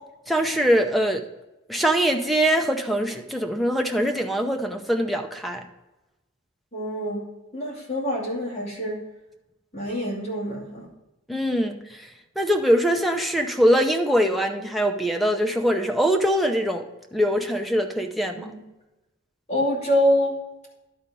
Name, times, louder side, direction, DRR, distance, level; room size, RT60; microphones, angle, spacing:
voice 1, 0.3-1.3 1.7-5.6 11.3-12.0 12.4-16.8 17.1-18.5, equal, ahead, 3 dB, 0.7 m, -22 dB
voice 2, 6.7-7.2 7.5-9.0 9.7-10.9 18.3-18.6 19.5-20.4, equal, 35° left, -3 dB, 2.5 m, -25 dB
11.0 x 4.4 x 5.2 m, 1.0 s
head